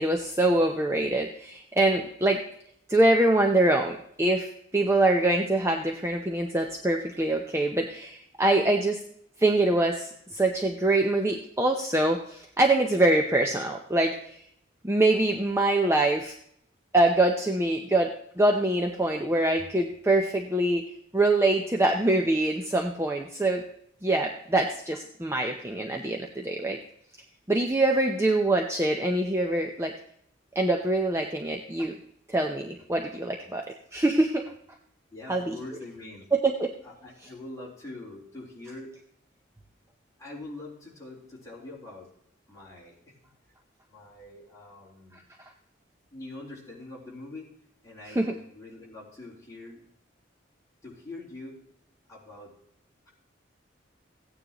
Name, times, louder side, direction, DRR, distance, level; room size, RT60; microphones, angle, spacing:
voice 1, 0.0-2.4 2.9-9.0 9.4-14.4 14.8-16.3 16.9-18.1 18.4-20.8 21.1-23.6 24.0-26.8 27.5-29.9 30.6-31.9 32.3-33.7 33.9-34.5 35.3-35.6 36.3-36.7 48.1-48.3, right 2 dB, 15° right, 2 dB, 0.6 m, -24 dB
voice 2, 35.1-36.3 36.8-38.9 40.2-42.1 42.5-43.2 43.9-45.2 46.1-47.5 47.8-49.8 50.8-51.6 52.1-52.5 53.1-53.2, left 2 dB, 15° left, -5 dB, 3.8 m, -43 dB
15.5 x 9.4 x 3.0 m, 0.69 s
head